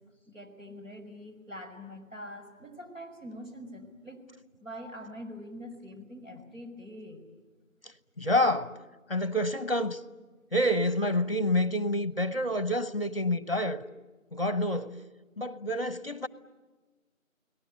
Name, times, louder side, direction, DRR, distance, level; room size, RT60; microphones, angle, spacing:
voice 1, 0.3-4.2 4.6-7.2, equal, 70° right, 5.6 m, -44 dB
voice 2, 8.2-8.8 9.1-10.0 10.5-13.8 14.3-15.0 15.4-16.3, left 1 dB, 45° left, 1.0 m, -28 dB
30.0 x 19.0 x 8.8 m
figure-of-eight pair, 175°, 41 cm